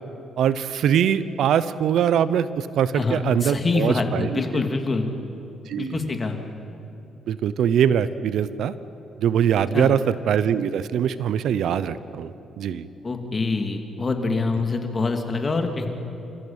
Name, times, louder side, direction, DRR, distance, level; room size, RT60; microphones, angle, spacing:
voice 1, 0.4-4.6 5.7-6.1 7.3-8.7 9.2-12.9, right 8 dB, 75° right, 15 dB, 0.8 m, -22 dB
voice 2, 2.9-5.1 5.8-6.4 9.7-9.9 13.0-15.9, left 3 dB, 30° left, 5 dB, 2.7 m, -25 dB
28.5 x 15.0 x 8.9 m, 2.8 s
cardioid pair, 90°, 0 cm